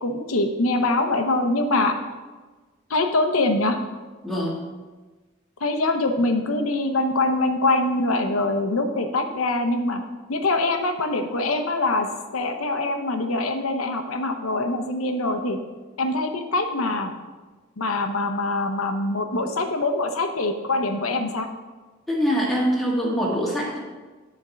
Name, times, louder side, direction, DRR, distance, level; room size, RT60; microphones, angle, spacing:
voice 1, 0.0-1.9 2.9-3.8 5.6-10.0 10.3-12.1 12.3-15.6 16.0-17.1 17.8-21.5, left 2 dB, 85° left, 6 dB, 0.9 m, -24 dB
voice 2, 4.2-4.6 22.1-23.8, equal, ahead, -5 dB, 1.7 m, -24 dB
9.9 x 4.4 x 5.1 m, 1.3 s
head